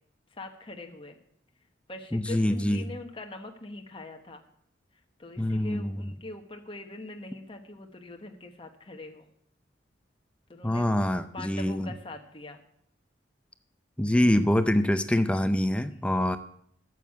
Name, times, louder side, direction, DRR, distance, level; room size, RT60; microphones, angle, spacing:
voice 1, 0.3-1.2 1.9-4.4 5.2-9.3 10.5-10.9 11.3-12.6, left 2 dB, 30° left, 4 dB, 1.2 m, -43 dB
voice 2, 2.1-2.8 5.4-5.8 10.6-11.9 14.0-16.4, left 1 dB, 5° left, 10 dB, 0.5 m, -25 dB
9.4 x 7.4 x 8.3 m, 0.68 s
head